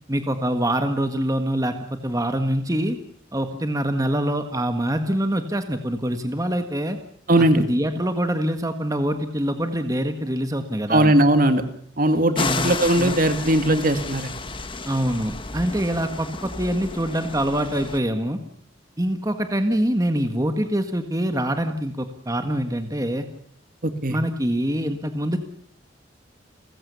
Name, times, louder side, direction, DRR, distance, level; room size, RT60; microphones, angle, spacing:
voice 1, 0.1-3.0 3.3-7.0 7.4-11.1 12.3-13.1 14.9-18.4 19.0-23.3 24.1-25.5, right 1 dB, 20° right, 7 dB, 1.6 m, -25 dB
voice 2, 7.3-7.6 10.9-11.6 12.0-14.3 24.0-24.2, right 1 dB, 45° right, 9 dB, 2.0 m, -19 dB
sound 1, 12.3-18.0, left 3 dB, 25° left, 1.6 m, -32 dB
30.0 x 15.0 x 6.9 m, 0.62 s
head